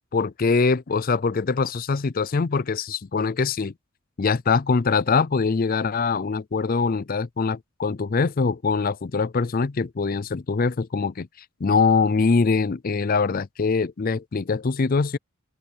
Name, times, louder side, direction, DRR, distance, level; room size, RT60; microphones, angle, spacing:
voice 1, 0.1-3.7 4.2-11.3 11.6-15.2, left 4 dB, 40° left, 0.4 m, -23 dB
open air
head